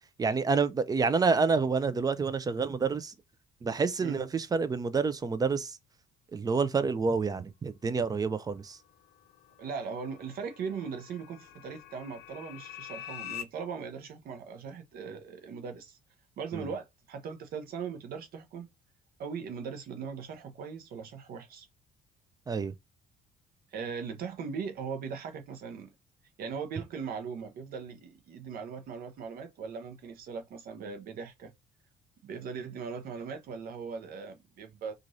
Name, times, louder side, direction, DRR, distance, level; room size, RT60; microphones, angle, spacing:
voice 1, 0.2-3.1 3.6-5.7 6.3-8.8 16.5-16.6 22.5-22.7, right 4 dB, 20° right, 0.4 m, -28 dB
sound 1, 9.1-13.4, left 12 dB, 85° left, 0.5 m, -45 dB
voice 2, 9.6-16.0 16.4-18.7 19.2-21.7 23.7-25.9 26.4-31.5 32.2-34.9, right 6 dB, 60° right, 0.7 m, -39 dB
3.0 x 2.5 x 2.6 m
cardioid pair, 110°, 17 cm